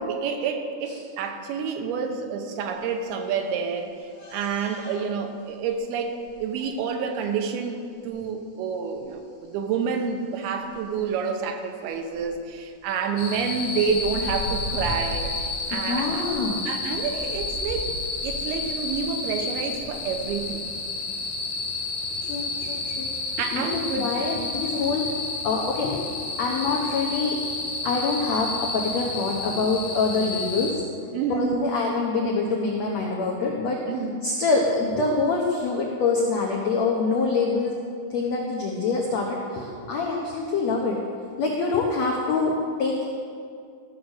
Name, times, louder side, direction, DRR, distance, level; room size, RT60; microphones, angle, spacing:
voice 1, 0.1-3.9 4.3-16.2 16.7-17.9 18.2-20.6 23.4-24.1 31.1-31.8 33.9-34.2, right 6 dB, 85° right, 5 dB, 2.8 m, -28 dB
sound 1, 4.1-5.0 6.3-6.4 8.0-8.1 9.1-9.2 10.6-10.9 11.4-11.5 11.9-12.4 13.7-16.5 16.9-20.4, left 1 dB, 25° left, 3.5 m, -38 dB
sound 2, 13.2-30.7, left 3 dB, 55° left, 2.0 m, -31 dB
voice 2, 15.7-16.6 22.2-23.1 23.5-26.1 26.3-27.4 27.8-30.8 31.3-33.8 34.2-37.8 38.1-41.0 41.4-43.1, left 4 dB, 80° left, -1 dB, 1.5 m, -25 dB
14.0 x 6.3 x 6.4 m, 2.3 s
omnidirectional pair, 4.5 m